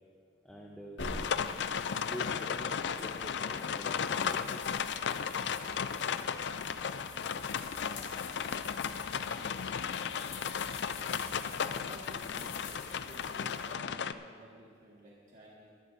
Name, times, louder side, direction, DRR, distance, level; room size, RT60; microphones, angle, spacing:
voice 1, 0.4-1.0 2.0-4.7, equal, 5° left, -2 dB, 0.8 m, -46 dB
sound 1, 1.0-13.7, left 3 dB, 80° left, 2.0 m, -47 dB
sound 2, 1.0-14.1, left 7 dB, 60° left, 0.4 m, -35 dB
voice 2, 7.8-8.2 9.1-9.6 11.8-15.7, right 1 dB, 40° right, -5 dB, 1.8 m, -53 dB
22.0 x 12.5 x 2.7 m, 2.2 s
head